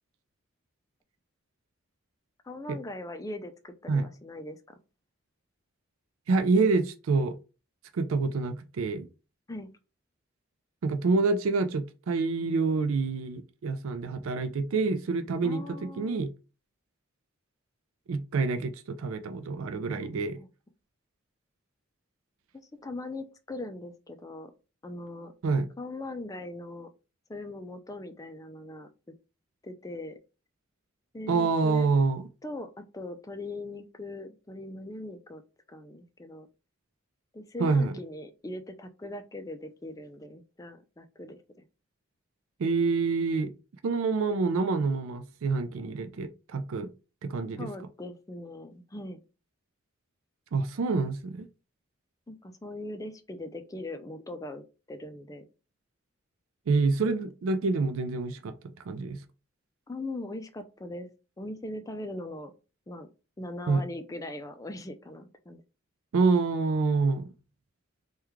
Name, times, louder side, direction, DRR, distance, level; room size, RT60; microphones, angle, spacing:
voice 1, 2.4-4.8 9.5-9.7 15.4-16.2 20.0-20.1 20.4-20.5 22.8-24.5 24.8-25.3 25.8-26.9 27.3-28.9 29.6-30.2 31.1-31.9 32.4-35.4 35.7-36.5 37.3-41.6 47.6-49.2 52.3-54.6 54.9-55.4 59.9-61.1 61.4-62.5 62.9-63.1 63.4-65.6, left 1 dB, 15° left, 0.3 m, -40 dB
voice 2, 6.3-7.3 7.9-9.1 10.8-16.3 18.1-20.4 25.4-25.7 31.3-32.2 37.6-37.9 42.6-43.5 43.8-46.9 47.2-47.7 50.5-51.5 56.7-58.5 58.9-59.2 63.7-63.8 66.1-67.3, right 4 dB, 80° right, 0.4 m, -27 dB
3.5 x 2.3 x 3.1 m
head